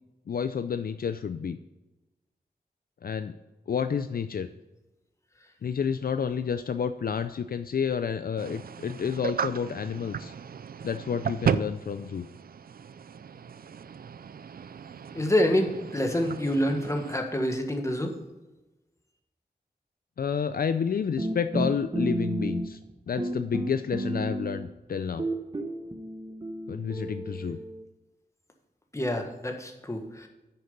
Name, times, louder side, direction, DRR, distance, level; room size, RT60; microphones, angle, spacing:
voice 1, 0.3-1.6 3.0-3.3 3.7-4.5 5.6-10.3 10.8-12.3 20.2-22.8 23.1-25.3 26.7-27.6, left 7 dB, 65° left, 10 dB, 0.5 m, -30 dB
sound 1, 8.4-17.2, right 7 dB, 65° right, 0.4 m, -35 dB
voice 2, 15.1-18.1 28.9-30.3, left 1 dB, 20° left, 3 dB, 1.5 m, -27 dB
sound 2, 21.2-22.9 23.2-24.8 25.2-27.8, right 1 dB, 25° right, 1.0 m, -32 dB
9.6 x 6.6 x 5.4 m, 1.1 s
wide cardioid pair, 85°, 17 cm